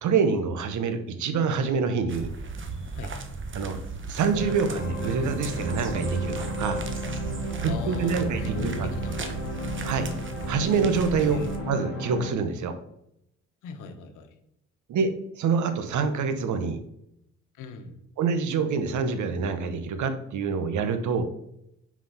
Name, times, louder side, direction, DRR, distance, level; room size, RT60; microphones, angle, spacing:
voice 1, 0.0-2.3 3.5-3.8 4.1-6.8 7.6-8.9 9.8-10.1 10.5-12.7 14.9-16.8 18.2-21.2, right 5 dB, 75° right, 9 dB, 1.1 m, -26 dB
sound 1, 2.1-11.6, right 4 dB, 40° right, 1.1 m, -35 dB
sound 2, 4.3-12.3, equal, 40° left, 3.2 m, -34 dB
voice 2, 7.6-9.3 11.3-11.5 13.6-14.3 17.6-18.0, left 5 dB, 85° left, 7 dB, 1.2 m, -39 dB
5.9 x 4.9 x 5.6 m, 0.77 s
cardioid pair, 90°, 30 cm